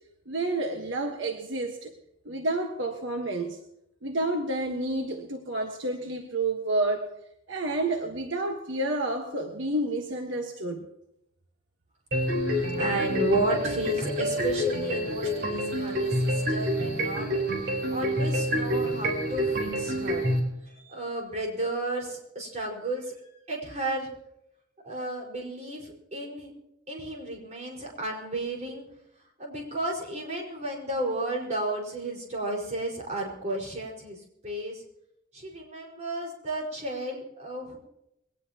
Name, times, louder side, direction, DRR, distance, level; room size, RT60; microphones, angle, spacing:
voice 1, 0.3-1.9 2.2-3.6 4.0-7.1 7.5-10.8, right 2 dB, 75° right, 3 dB, 1.4 m, -30 dB
sound 1, 12.1-20.4, equal, 55° right, 4.1 m, -28 dB
voice 2, 12.4-17.3 17.7-20.2 20.8-24.1 24.8-26.5 26.9-28.8 29.4-34.2 34.4-34.8 35.3-37.8, right 1 dB, 35° right, -1 dB, 4.9 m, -33 dB
22.0 x 18.5 x 3.0 m, 0.81 s
head